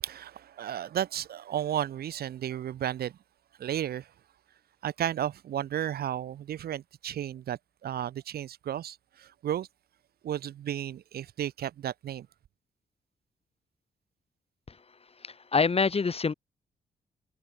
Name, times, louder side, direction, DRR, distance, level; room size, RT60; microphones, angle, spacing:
voice 1, 0.0-3.2 3.6-4.1 4.8-9.7 10.2-12.3, right 10 dB, 60° right, 0.8 m, -33 dB
voice 2, 15.2-16.3, left 4 dB, 35° left, 1.2 m, -26 dB
hypercardioid pair, 40°, 18 cm